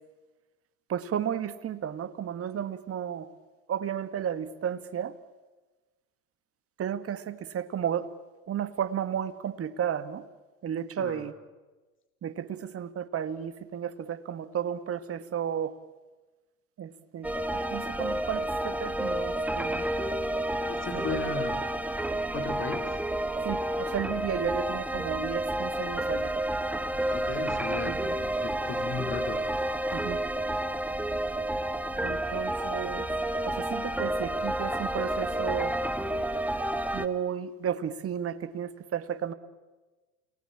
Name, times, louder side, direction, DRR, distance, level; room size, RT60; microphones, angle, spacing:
voice 1, 0.9-3.3 3.7-5.2 6.8-8.1 8.5-10.2 10.6-11.3 12.2-15.7 16.8-19.9 20.9-21.2 23.4-26.3 27.8-28.1 29.9-30.2 32.0-33.1 33.5-35.7 36.9-39.3, right 9 dB, 30° right, 12 dB, 1.8 m, -33 dB
sound 1, 17.2-37.1, right 1 dB, 5° right, 1.3 m, -30 dB
voice 2, 20.6-21.6 22.3-23.0 27.1-29.4, left 4 dB, 30° left, 5 dB, 4.4 m, -36 dB
29.5 x 19.5 x 8.7 m, 1.2 s
hypercardioid pair, 85°, 42 cm